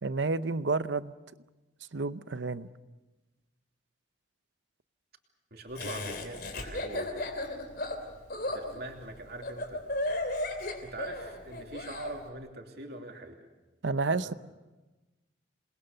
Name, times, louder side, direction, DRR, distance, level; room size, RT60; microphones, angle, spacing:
voice 1, 0.0-1.1 1.9-2.7 13.8-14.3, right 3 dB, 75° right, 14 dB, 0.7 m, -30 dB
voice 2, 5.5-7.3 8.5-9.8 10.8-13.4 14.1-14.3, right 1 dB, 55° right, 3 dB, 2.9 m, -43 dB
Laughter, 5.7-12.1, left 1 dB, 55° left, 3.4 m, -35 dB
28.0 x 21.0 x 6.8 m, 1.1 s
head